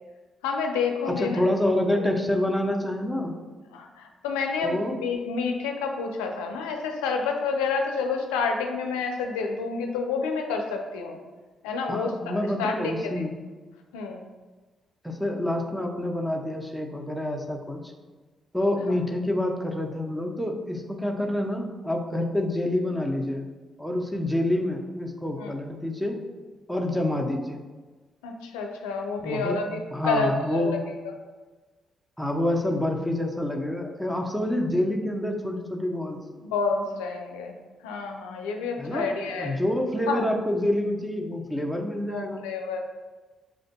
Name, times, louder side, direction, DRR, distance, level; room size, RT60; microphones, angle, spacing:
voice 1, 0.4-1.4 2.0-2.1 3.7-11.2 11.6-13.1 13.9-14.2 25.3-25.5 28.2-30.8 36.5-37.5 37.8-39.6 40.1-40.2 42.1-42.8, left 4 dB, 90° left, 3 dB, 0.4 m, -29 dB
voice 2, 1.0-3.3 4.6-5.0 11.9-13.3 15.0-17.8 18.5-23.4 23.8-26.2 26.7-27.6 29.2-30.8 32.2-36.2 38.8-39.1 39.4-42.4, left 1 dB, ahead, 2 dB, 0.8 m, -27 dB
6.9 x 2.6 x 2.2 m, 1.3 s
hypercardioid pair, 45°, 0 cm